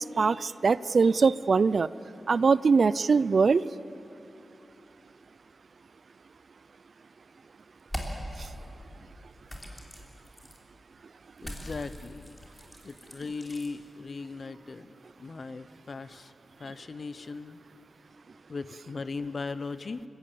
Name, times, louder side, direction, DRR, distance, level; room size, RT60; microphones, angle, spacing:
voice 1, 0.0-1.9 2.3-3.6, right 4 dB, 55° right, 18 dB, 0.4 m, -22 dB
sound 1, 7.8-8.5 9.5-10.6 11.4-13.7, equal, 5° left, 3.3 m, -40 dB
voice 2, 11.4-12.3 12.8-14.9 15.2-16.3 16.6-17.6 18.5-20.0, left 4 dB, 50° left, 13 dB, 0.8 m, -38 dB
28.0 x 16.0 x 8.6 m, 2.9 s
wide cardioid pair, 110°, 0 cm